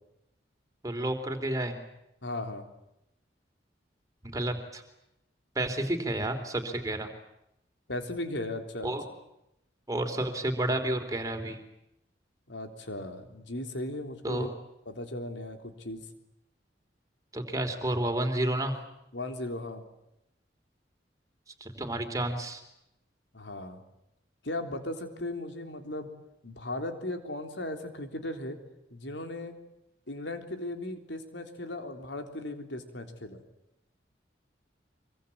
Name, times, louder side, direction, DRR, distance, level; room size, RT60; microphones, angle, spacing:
voice 1, 0.8-1.7 4.2-4.8 5.6-7.1 8.8-9.0 9.9-11.6 14.2-14.5 17.3-18.7 21.6-22.6, right 1 dB, 20° right, 5 dB, 3.7 m, -30 dB
voice 2, 2.2-2.7 7.9-8.9 12.5-14.5 14.9-16.0 19.1-19.8 23.3-23.8 24.4-26.1 26.4-28.6 28.9-29.6 30.1-33.4, left 1 dB, 75° left, 6 dB, 3.6 m, -37 dB
25.0 x 24.0 x 8.7 m, 0.85 s
head